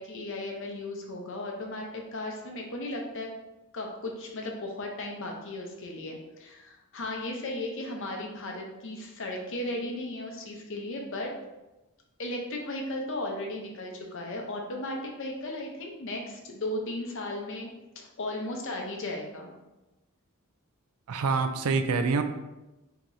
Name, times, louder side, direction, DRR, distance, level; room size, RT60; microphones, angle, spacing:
voice 1, 0.0-3.3 3.7-11.3 12.2-17.7 18.2-19.5, left 1 dB, 60° left, 1 dB, 0.7 m, -35 dB
voice 2, 21.1-22.2, right 4 dB, 85° right, 8 dB, 0.4 m, -26 dB
4.7 x 2.9 x 2.6 m, 1.0 s
head